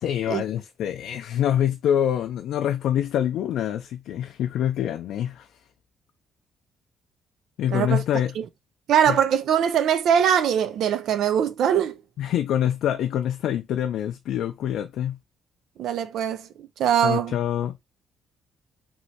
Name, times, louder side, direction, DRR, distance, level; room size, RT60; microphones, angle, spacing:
voice 1, 0.0-5.5 7.6-8.3 9.1-9.2 12.2-15.2 17.0-17.7, left 10 dB, 80° left, 0.3 m, -25 dB
voice 2, 7.7-8.0 8.4-8.5 8.9-12.0 15.8-16.5 16.8-17.4, right 9 dB, 75° right, 0.3 m, -22 dB
3.1 x 2.6 x 2.7 m
cardioid pair, 90°, 0 cm